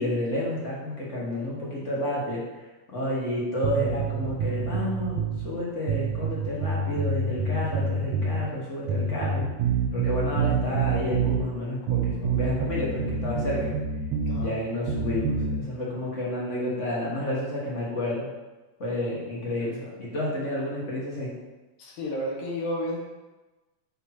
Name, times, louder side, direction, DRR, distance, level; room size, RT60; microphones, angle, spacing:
voice 1, 0.0-2.4 2.9-9.4 9.9-13.7 14.4-18.3 18.8-21.3, left 1 dB, 40° left, -5 dB, 1.2 m, -30 dB
sound 1, 3.6-5.4 5.9-8.5 8.9-11.4 11.9-14.4 14.9-15.5, right 4 dB, 80° right, 1.4 m, -27 dB
voice 2, 19.6-19.9 21.8-23.0, left 1 dB, 85° left, -4 dB, 2.8 m, -32 dB
6.7 x 3.1 x 5.8 m, 1.1 s
omnidirectional pair, 3.5 m